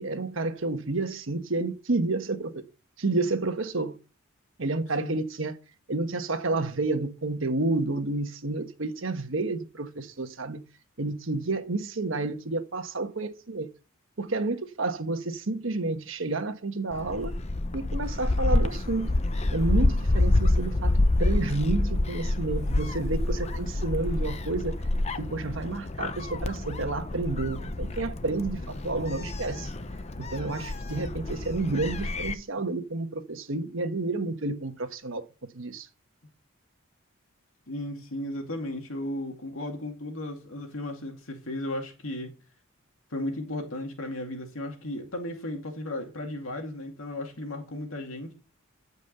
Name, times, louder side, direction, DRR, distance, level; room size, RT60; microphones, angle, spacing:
voice 1, 0.0-2.6 3.0-4.0 4.6-5.6 5.9-10.6 11.0-13.7 14.2-17.3 17.7-19.1 19.5-20.9 21.2-24.7 25.2-29.7 30.3-35.2 35.5-35.9, right 2 dB, 65° right, 1.2 m, -30 dB
Gull seagull, 16.9-32.3, left 2 dB, 30° left, 0.7 m, -28 dB
voice 2, 37.7-42.3 43.1-48.3, left 1 dB, 75° left, 2.3 m, -35 dB
14.0 x 5.4 x 6.7 m
head